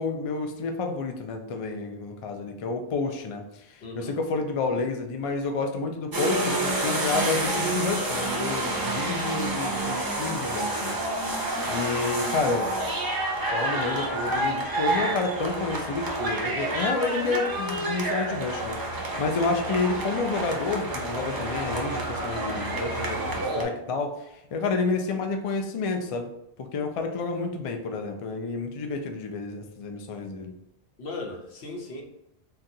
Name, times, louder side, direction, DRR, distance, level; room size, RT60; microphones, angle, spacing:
voice 1, 0.0-11.0 11.6-12.7 13.5-26.3 26.6-30.5, left 4 dB, 55° left, 4 dB, 0.4 m, -30 dB
voice 2, 3.8-4.2 31.0-32.0, left 3 dB, 85° left, 1 dB, 1.0 m, -37 dB
sound 1, 6.1-23.6, right 2 dB, 30° right, 0.4 m, -29 dB
3.8 x 2.3 x 2.7 m, 0.86 s
omnidirectional pair, 1.1 m